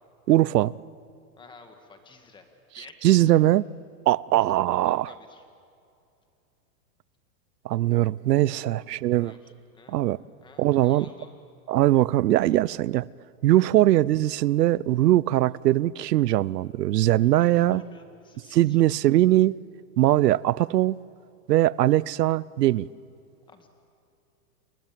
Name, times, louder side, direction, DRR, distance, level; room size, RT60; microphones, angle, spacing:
voice 1, 0.3-0.7 3.0-3.6 4.1-5.1 7.6-9.3 9.9-10.2 10.6-11.1 11.7-13.1 13.4-17.8 18.5-19.6 20.0-21.0 21.5-22.9, right 14 dB, 85° right, 0.7 m, -21 dB
voice 2, 1.4-2.5 2.7-3.2 4.4-4.5 4.8-5.4 8.8-10.1 10.4-11.3 17.2-19.2 23.5-23.7, left 4 dB, 10° left, 1.9 m, -51 dB
30.0 x 21.5 x 7.6 m
supercardioid pair, 160°, 47 cm